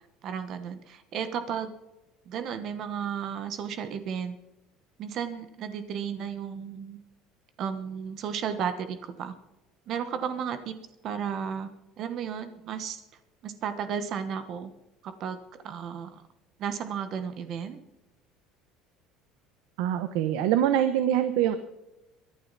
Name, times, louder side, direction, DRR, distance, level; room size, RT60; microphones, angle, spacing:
voice 1, 0.2-1.7 2.3-4.4 5.0-7.0 7.6-9.3 9.9-10.7 11.0-11.7 12.0-13.0 13.4-14.7 15.0-16.2 16.6-17.8, right 7 dB, 45° right, 9 dB, 1.2 m, -33 dB
voice 2, 19.8-21.6, right 11 dB, 80° right, 10 dB, 1.0 m, -24 dB
22.5 x 11.5 x 4.1 m, 0.93 s
cardioid pair, 145°, 0 cm